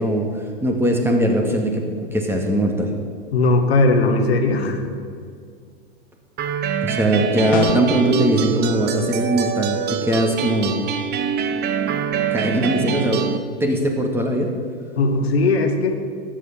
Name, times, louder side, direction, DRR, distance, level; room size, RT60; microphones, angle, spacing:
voice 1, 0.0-2.9 6.8-10.8 12.3-13.3 13.6-14.5, right 1 dB, 5° right, 2 dB, 2.2 m, -20 dB
voice 2, 3.3-4.9 15.0-16.0, left 2 dB, 80° left, 5 dB, 1.9 m, -18 dB
sound 1, 6.4-13.4, right 8 dB, 30° right, 1.1 m, -24 dB
sound 2, 7.5-8.1, left 10 dB, 30° left, 0.6 m, -26 dB
14.0 x 9.8 x 7.1 m, 2.1 s
hypercardioid pair, 110°, 31 cm